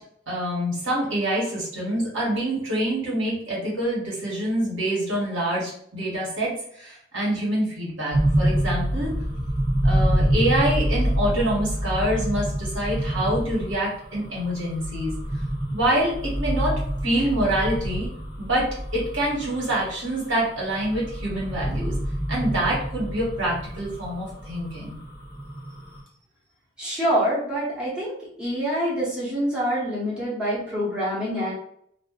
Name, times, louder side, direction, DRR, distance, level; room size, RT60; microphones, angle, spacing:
voice 1, 0.3-9.1 9.8-15.1 15.7-18.1 18.4-21.9 22.3-25.0, right 1 dB, 85° right, -5 dB, 1.3 m, -26 dB
sound 1, 8.1-26.0, right 1 dB, 40° right, 1.0 m, -27 dB
voice 2, 26.8-28.1 28.4-31.5, equal, 5° right, -8 dB, 0.9 m, -26 dB
2.4 x 2.2 x 3.6 m, 0.67 s
head